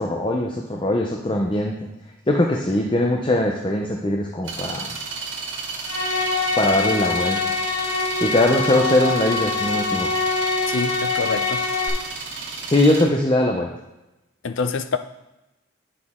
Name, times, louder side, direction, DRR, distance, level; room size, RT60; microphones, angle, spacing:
voice 1, 0.0-1.8 2.3-5.0 6.6-7.4 8.2-10.1 12.7-13.7, left 1 dB, 25° left, 1 dB, 0.6 m, -21 dB
sound 1, 4.4-13.0, right 4 dB, 60° right, 1.8 m, -33 dB
sound 2, 5.8-11.9, left 4 dB, 85° left, 1.8 m, -24 dB
voice 2, 10.7-11.6 14.4-15.0, left 5 dB, 65° left, 9 dB, 0.5 m, -26 dB
9.9 x 6.1 x 3.7 m, 0.96 s
head